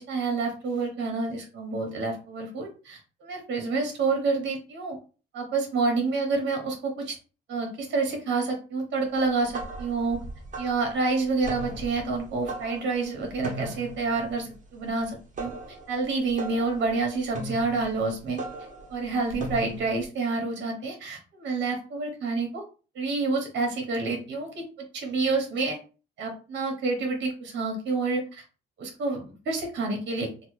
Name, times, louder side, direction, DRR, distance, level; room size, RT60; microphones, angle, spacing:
voice 1, 0.0-5.0 5.3-7.1 7.5-10.2 10.6-15.5 15.9-18.4 18.9-22.6 22.9-25.8 26.2-28.4 28.8-30.3, right 3 dB, 65° right, 2 dB, 1.0 m, -28 dB
sound 1, 9.2-20.0, right 2 dB, 40° right, 1.1 m, -39 dB
3.1 x 2.3 x 3.1 m, 0.35 s
cardioid pair, 90°, 20 cm